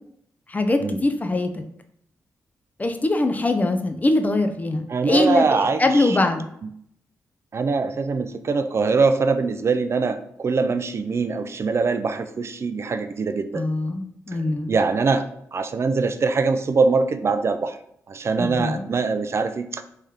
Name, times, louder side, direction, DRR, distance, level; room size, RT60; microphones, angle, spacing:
voice 1, 0.5-1.6 2.8-5.4 5.8-6.5 13.5-14.7 18.4-18.9, left 2 dB, 25° left, 7 dB, 0.5 m, -22 dB
voice 2, 4.9-6.2 6.6-6.7 7.5-13.6 14.3-14.4 14.7-17.8 18.1-19.8, right 4 dB, 45° right, 9 dB, 0.3 m, -23 dB
3.2 x 2.8 x 3.6 m, 0.70 s
cardioid pair, 65°, 6 cm